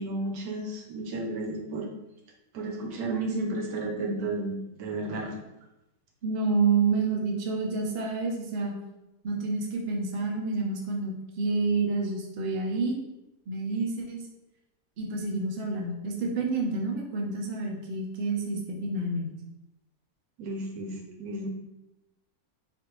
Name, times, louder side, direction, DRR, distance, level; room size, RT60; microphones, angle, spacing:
voice 1, 0.0-1.9 2.5-5.3 20.4-21.5, right 2 dB, 85° right, 1 dB, 1.2 m, -32 dB
voice 2, 6.2-8.8 9.2-13.0 13.5-14.2 15.0-19.3, right 3 dB, 55° right, 0 dB, 0.8 m, -28 dB
4.2 x 2.5 x 3.0 m, 0.94 s
omnidirectional pair, 1.5 m